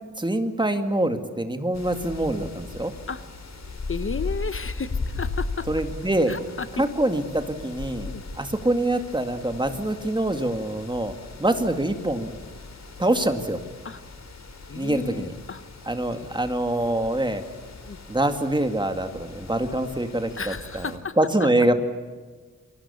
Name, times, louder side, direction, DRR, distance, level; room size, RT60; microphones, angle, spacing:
voice 1, 0.2-2.9 5.7-6.4 6.8-11.1 11.4-12.3 13.0-13.6 14.7-15.3 15.9-17.4 18.1-20.9 21.2-21.7, right 1 dB, 15° right, 7 dB, 2.2 m, -25 dB
sound 1, 1.7-21.0, left 3 dB, 60° left, 3.9 m, -38 dB
voice 2, 3.9-5.7 6.3-6.8 8.0-8.2 13.8-14.0 14.7-15.6 16.1-16.3 17.9-18.0 20.4-21.2, left 5 dB, 40° left, 12 dB, 1.0 m, -33 dB
29.5 x 23.0 x 7.1 m, 1.5 s
wide cardioid pair, 150°, 31 cm